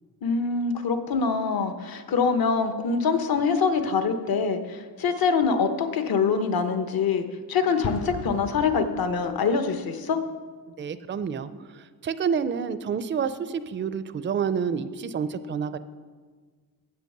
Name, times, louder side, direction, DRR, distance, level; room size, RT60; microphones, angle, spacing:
voice 1, 0.2-10.2, left 5 dB, 65° left, 8 dB, 0.9 m, -24 dB
Explosion, 7.8-9.5, left 6 dB, 40° left, 0.4 m, -37 dB
voice 2, 10.8-15.8, right 6 dB, 30° right, 13 dB, 0.4 m, -29 dB
8.2 x 7.9 x 6.5 m, 1.5 s
wide cardioid pair, 115°, 38 cm